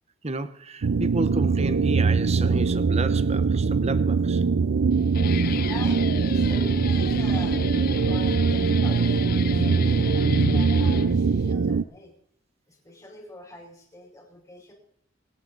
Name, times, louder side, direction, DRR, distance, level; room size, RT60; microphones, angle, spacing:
voice 1, 0.2-4.4, right 2 dB, 35° right, 0.9 m, -31 dB
sound 1, 0.8-11.8, right 5 dB, 80° right, 0.5 m, -22 dB
Guitar, 4.9-11.5, left 5 dB, 50° left, 0.5 m, -33 dB
voice 2, 5.6-6.0 6.3-7.6 8.0-12.1 12.7-14.7, left 1 dB, 20° left, 5.2 m, -43 dB
27.0 x 9.5 x 4.0 m
head